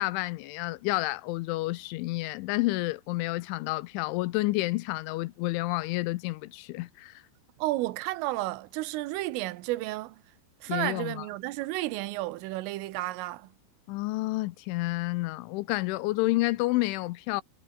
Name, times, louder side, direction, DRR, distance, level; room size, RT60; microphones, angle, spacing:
voice 1, 0.0-7.2 10.7-11.3 13.9-17.4, left 20 dB, 80° left, 3.0 m, -30 dB
voice 2, 7.6-10.2 10.6-13.5, right 18 dB, 85° right, 3.6 m, -32 dB
omnidirectional pair, 5.7 m